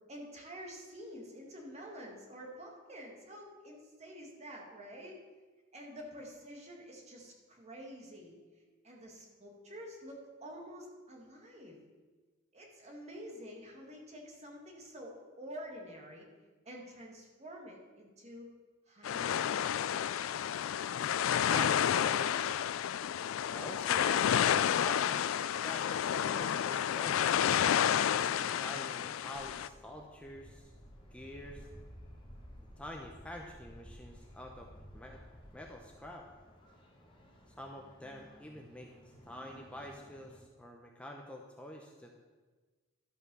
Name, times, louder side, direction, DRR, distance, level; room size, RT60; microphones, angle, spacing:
voice 1, 0.1-5.2 5.7-8.4 8.8-11.8 12.5-16.3 16.7-18.5 18.9-19.7, equal, 35° right, 0 dB, 2.0 m, -48 dB
sound 1, 19.0-29.7, left 9 dB, 80° left, 0.3 m, -30 dB
voice 2, 21.4-22.5 23.5-27.4 28.1-30.7 31.1-31.7 32.6-34.7 34.9-35.2 35.5-36.3 37.6-38.9 39.3-42.2, equal, 5° left, 1 dB, 0.7 m, -46 dB
sound 2, 29.3-40.4, equal, 25° left, 1.8 m, -55 dB
12.0 x 5.7 x 6.2 m, 1.4 s
head